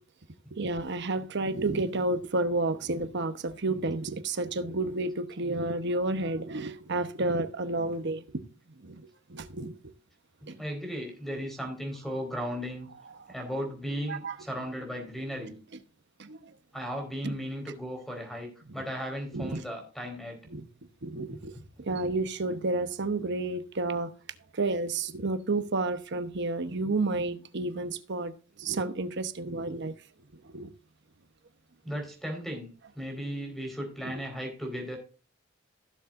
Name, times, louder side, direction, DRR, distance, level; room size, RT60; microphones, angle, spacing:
voice 1, 0.5-8.4 8.8-9.0 9.3-9.8 10.5-10.6 14.1-14.4 16.2-16.5 17.2-17.3 19.3-19.6 20.5-20.6 21.0-21.5 21.8-24.1 24.5-28.3 28.6-29.9 30.5-30.7 34.0-34.1, right 2 dB, 60° right, 1.0 m, -31 dB
voice 2, 10.6-12.9 13.3-15.6 16.7-20.4 31.8-32.7 33.0-35.0, equal, ahead, 4.2 m, -36 dB
16.0 x 7.1 x 2.5 m
head